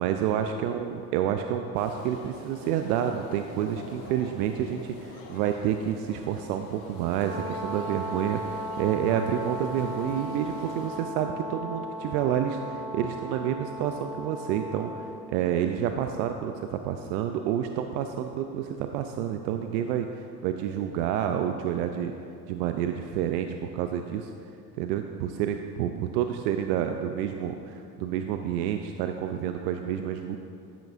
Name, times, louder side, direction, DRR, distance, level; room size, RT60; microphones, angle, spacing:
voice 1, 0.0-22.1 22.5-24.3 24.8-30.4, right 9 dB, 75° right, 6 dB, 0.6 m, -29 dB
sound 1, 1.7-11.0, left 3 dB, 50° left, 1.5 m, -45 dB
Brass instrument, 7.2-15.2, equal, 25° right, 1.5 m, -37 dB
10.5 x 8.9 x 2.5 m, 2.6 s
hypercardioid pair, 75°, 48 cm